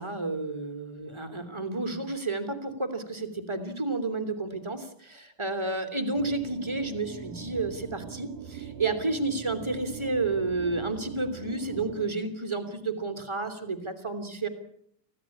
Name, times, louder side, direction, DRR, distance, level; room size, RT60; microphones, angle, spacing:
voice 1, 0.0-14.5, right 3 dB, 10° right, 7 dB, 2.4 m, -31 dB
sound 1, 6.1-12.1, right 8 dB, 70° right, 3.2 m, -42 dB
25.5 x 16.0 x 8.6 m, 0.68 s
omnidirectional pair, 4.0 m